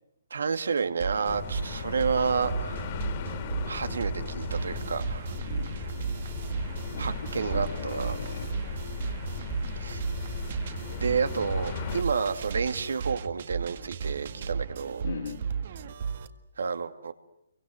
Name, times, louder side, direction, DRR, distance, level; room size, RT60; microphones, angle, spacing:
voice 1, 0.3-2.8 3.6-5.3 7.0-8.2 9.8-10.0 11.0-15.1 16.6-17.1, right 5 dB, 80° right, 9 dB, 2.4 m, -30 dB
sound 1, 0.8-16.3, right 6 dB, 45° right, 1.9 m, -35 dB
sound 2, 1.3-12.0, left 5 dB, 30° left, 2.9 m, -36 dB
voice 2, 5.5-5.8 6.9-8.5 15.0-15.4, left 6 dB, 60° left, 5 dB, 3.3 m, -39 dB
28.5 x 24.5 x 8.0 m, 0.84 s
hypercardioid pair, 170°, 0 cm